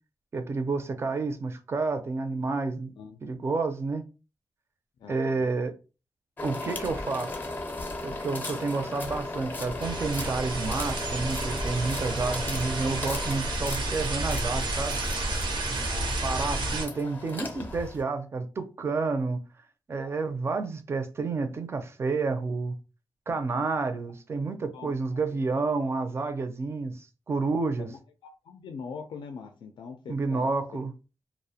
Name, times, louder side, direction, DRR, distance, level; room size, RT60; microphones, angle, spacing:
voice 1, 0.3-2.9 3.2-4.0 5.1-5.7 6.4-7.4 8.0-15.0 16.2-19.4 19.9-22.8 23.3-27.9 30.1-30.9, right 3 dB, 35° right, 0.4 m, -30 dB
voice 2, 5.0-5.6 15.7-16.4 17.0-17.1 17.4-17.5 20.0-20.1 24.7-25.2 27.8-30.5, left 5 dB, 80° left, 0.4 m, -43 dB
sound 1, 6.4-18.0, left 2 dB, 25° left, 0.5 m, -37 dB
sound 2, 9.8-16.9, right 2 dB, 80° right, 0.6 m, -31 dB
2.4 x 2.0 x 2.7 m
wide cardioid pair, 140°, 8 cm